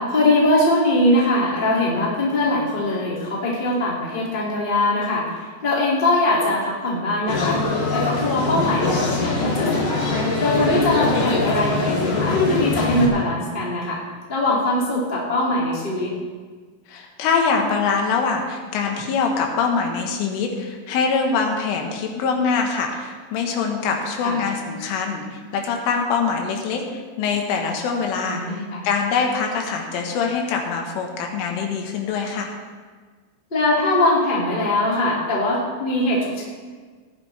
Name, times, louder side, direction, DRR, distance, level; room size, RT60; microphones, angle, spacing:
voice 1, 0.0-7.6 7.9-10.0 10.4-14.0 14.3-16.1 24.2-24.4 28.2-28.8 33.5-36.4, left 1 dB, 20° left, -6 dB, 1.4 m, -21 dB
sound 1, 7.3-13.1, left 3 dB, 45° left, 3.1 m, -22 dB
voice 2, 16.9-32.5, left 5 dB, 85° left, 2 dB, 3.9 m, -24 dB
18.0 x 10.5 x 3.4 m, 1.5 s
omnidirectional pair, 5.6 m